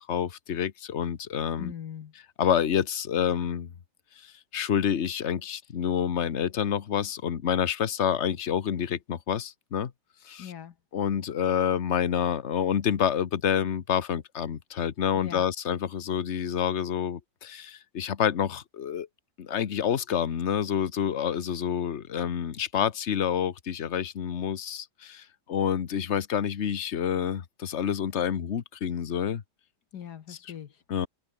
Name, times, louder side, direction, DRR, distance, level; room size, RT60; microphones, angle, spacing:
voice 1, 0.0-1.7 2.4-3.7 4.2-9.9 10.2-10.5 10.9-19.1 19.4-29.4 30.3-30.4 30.9-31.1, left 8 dB, 45° left, 1.3 m, -28 dB
voice 2, 1.6-2.1 10.4-10.7 15.1-15.4 29.9-30.8, left 9 dB, 70° left, 1.7 m, -40 dB
omnidirectional pair, 1.9 m